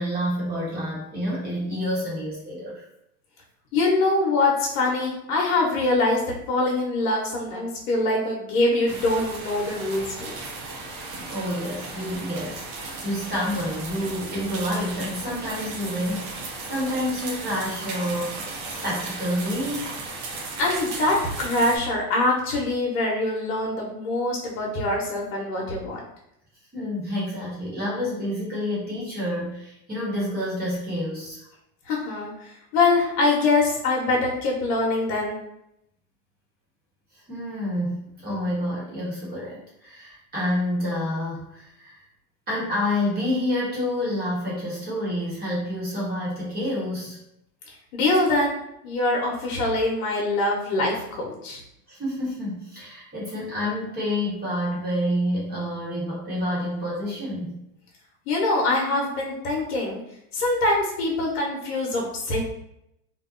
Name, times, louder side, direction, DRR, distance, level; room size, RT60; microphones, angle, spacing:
voice 1, 0.0-2.9 11.2-19.9 26.7-31.5 37.3-42.0 42.5-47.2 51.9-57.6, left 1 dB, 20° right, -6 dB, 0.9 m, -28 dB
voice 2, 3.7-10.3 20.6-26.0 31.9-35.4 47.9-48.5 48.8-51.6 58.3-60.0 60.3-62.4, left 2 dB, 75° left, -2 dB, 0.8 m, -24 dB
sound 1, 8.9-21.8, right 3 dB, 60° right, 0.7 m, -36 dB
2.6 x 2.1 x 2.4 m, 0.80 s
supercardioid pair, 120°, 44 cm